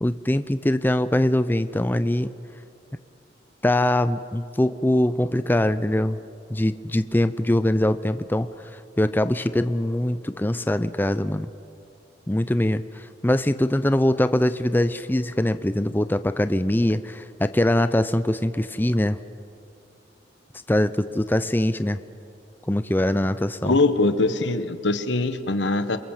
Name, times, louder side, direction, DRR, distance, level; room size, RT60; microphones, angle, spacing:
voice 1, 0.0-2.3 3.6-6.2 6.5-8.5 9.0-11.5 12.3-19.2 20.7-22.0 22.7-23.8, left 1 dB, 10° left, 12 dB, 0.5 m, -22 dB
voice 2, 23.6-26.0, left 2 dB, 85° left, 10 dB, 1.4 m, -22 dB
28.0 x 23.0 x 7.5 m, 2.5 s
head